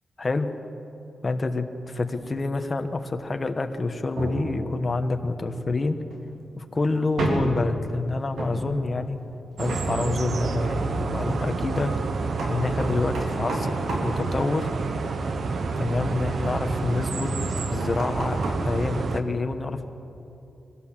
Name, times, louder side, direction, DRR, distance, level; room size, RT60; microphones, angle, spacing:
voice 1, 0.2-0.5 1.2-1.6 2.0-6.0 6.5-9.2 9.6-11.9 12.5-13.8 14.0-14.7 15.8-17.3 17.7-19.9, left 3 dB, 25° left, 7 dB, 1.2 m, -27 dB
sound 1, 4.2-15.2 17.8-18.7, right 1 dB, 80° right, 3.4 m, -33 dB
sound 2, 9.6-19.2, right 4 dB, 55° right, 1.1 m, -28 dB
24.0 x 17.0 x 7.4 m, 2.8 s
wide cardioid pair, 150°, 0 cm